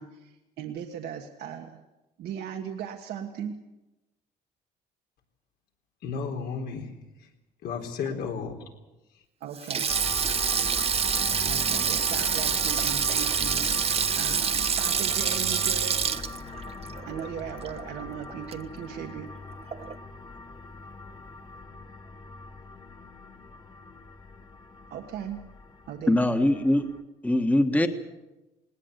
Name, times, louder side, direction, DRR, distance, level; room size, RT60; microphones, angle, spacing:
voice 1, 0.0-1.8 2.2-3.6 8.1-8.2 9.4-9.9 11.4-16.0 17.1-19.3 24.9-25.4 25.9-26.2, right 8 dB, 70° right, 1.6 m, -38 dB
voice 2, 6.0-6.9 7.2-7.3 7.6-8.7, left 5 dB, 75° left, 3.9 m, -33 dB
Sink (filling or washing), 9.6-18.0 18.3-18.5 19.7-20.0, right 7 dB, 35° right, 0.9 m, -27 dB
sound 1, 9.9-27.0, left 3 dB, 25° left, 1.7 m, -40 dB
voice 3, 26.1-26.9 27.2-27.9, left 1 dB, 10° left, 1.5 m, -22 dB
19.5 x 19.0 x 8.2 m
cardioid pair, 110°, 17 cm